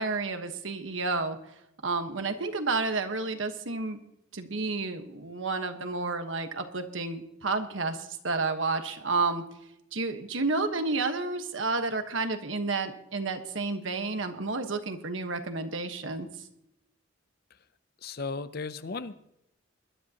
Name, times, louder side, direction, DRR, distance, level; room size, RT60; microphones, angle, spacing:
voice 1, 0.0-1.4 1.8-4.0 4.3-9.4 9.9-16.3, right 3 dB, 75° right, 7 dB, 1.3 m, -30 dB
voice 2, 18.0-19.2, left 4 dB, 50° left, 13 dB, 0.6 m, -36 dB
20.0 x 12.5 x 2.9 m, 0.81 s
head